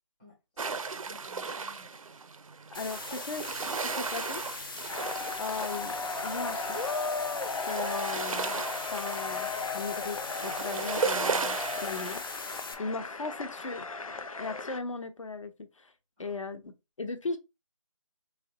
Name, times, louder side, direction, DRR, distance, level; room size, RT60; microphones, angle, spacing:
voice 1, 0.2-2.0 16.2-16.4, left 2 dB, ahead, 0.5 m, -58 dB
sound 1, 0.6-12.2, right 4 dB, 85° right, 0.5 m, -36 dB
voice 2, 2.7-3.5 3.8-4.4 5.4-6.0 6.2-6.8 7.7-8.6 8.9-12.2 12.8-13.9 14.4-15.9 16.2-16.7 17.0-17.4, left 3 dB, 70° left, 1.0 m, -37 dB
sound 2, 2.7-12.7, left 4 dB, 40° left, 0.8 m, -41 dB
sound 3, 4.9-14.8, left 4 dB, 90° left, 0.6 m, -36 dB
3.2 x 3.1 x 2.9 m
figure-of-eight pair, 165°, 17 cm